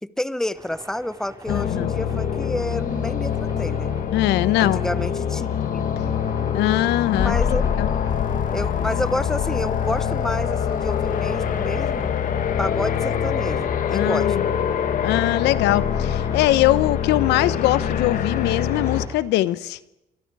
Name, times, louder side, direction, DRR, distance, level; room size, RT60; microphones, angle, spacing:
voice 1, 0.0-3.9 4.6-5.5 6.0-6.2 7.2-7.7 8.5-12.1 12.6-14.6, left 1 dB, 5° left, 15 dB, 1.0 m, -29 dB
sound 1, 0.5-19.2, right 2 dB, 20° right, 4.2 m, -44 dB
voice 2, 1.5-1.9 4.1-4.8 6.5-7.3 7.8-7.9 13.9-14.4 15.0-19.8, left 15 dB, 85° left, 16 dB, 0.9 m, -21 dB
sound 2, 1.5-19.1, left 8 dB, 55° left, 1.7 m, -24 dB
29.5 x 24.0 x 4.8 m, 0.92 s
cardioid pair, 110°, 17 cm